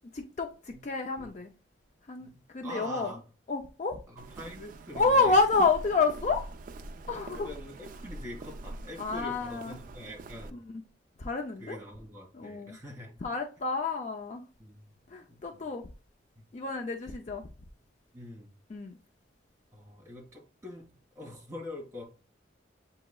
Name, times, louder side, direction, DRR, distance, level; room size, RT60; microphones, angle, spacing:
voice 1, 0.1-1.5 2.1-2.3 2.5-3.1 3.5-4.0 4.9-6.4 7.1-7.5 9.0-9.8 10.5-10.8 11.2-11.8 12.3-12.8 13.2-14.5 15.1-15.9 16.5-17.5 18.7-18.9, left 3 dB, 40° left, 0.4 m, -29 dB
voice 2, 2.2-3.2 4.1-5.4 7.1-10.6 11.6-13.1 14.6-15.0 15.3-15.7 16.4-16.5 18.1-18.5 19.7-22.0, left 1 dB, 15° right, 1.7 m, -44 dB
Walk footsteps, 4.2-10.5, right 2 dB, 45° right, 0.3 m, -44 dB
7.5 x 2.9 x 2.3 m
head